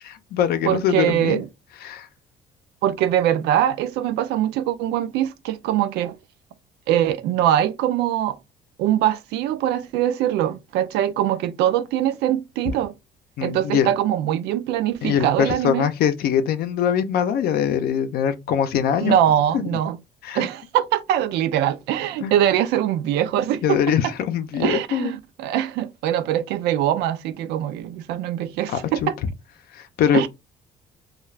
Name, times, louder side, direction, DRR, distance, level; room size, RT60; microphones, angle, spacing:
voice 1, 0.0-1.4 1.8-2.1 13.4-13.9 15.0-19.2 19.5-19.6 20.2-20.5 22.2-22.3 23.6-25.1 28.7-29.1 29.7-30.3, left 8 dB, 65° left, 0.5 m, -22 dB
voice 2, 0.7-1.5 2.8-6.2 6.9-8.4 8.8-12.9 13.4-15.9 19.0-20.0 20.3-24.1 24.6-29.2 30.1-30.3, right 11 dB, 85° right, 0.4 m, -22 dB
2.4 x 2.2 x 3.1 m
cardioid pair, 110°, 17 cm